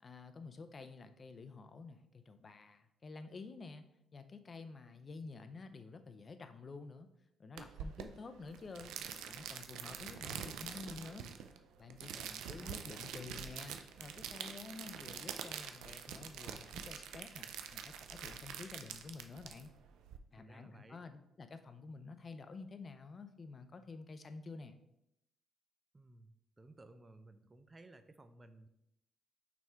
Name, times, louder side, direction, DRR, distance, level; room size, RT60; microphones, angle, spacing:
voice 1, 0.0-3.8 4.1-7.1 7.4-8.9 9.3-11.3 11.8-19.7 20.3-24.8, left 4 dB, 40° left, 9 dB, 0.5 m, -50 dB
sound 1, 7.6-20.2, right 8 dB, 90° right, 0.4 m, -46 dB
voice 2, 12.2-12.8 20.3-21.0 25.9-28.7, right 2 dB, 20° right, 10 dB, 0.5 m, -58 dB
5.9 x 3.6 x 4.4 m, 0.81 s
cardioid pair, 90°, 0 cm